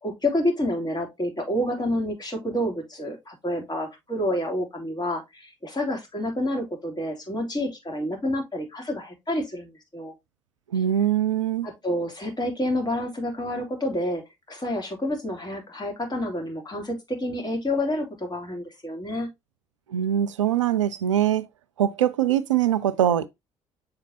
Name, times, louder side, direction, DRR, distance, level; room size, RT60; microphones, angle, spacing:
voice 1, 0.0-10.1 11.6-19.3, left 1 dB, 25° left, 3.0 m, -29 dB
voice 2, 10.7-11.7 19.9-21.5 21.8-23.3, right 10 dB, 80° right, 0.4 m, -22 dB
7.0 x 4.9 x 2.8 m
figure-of-eight pair, 45°, 16 cm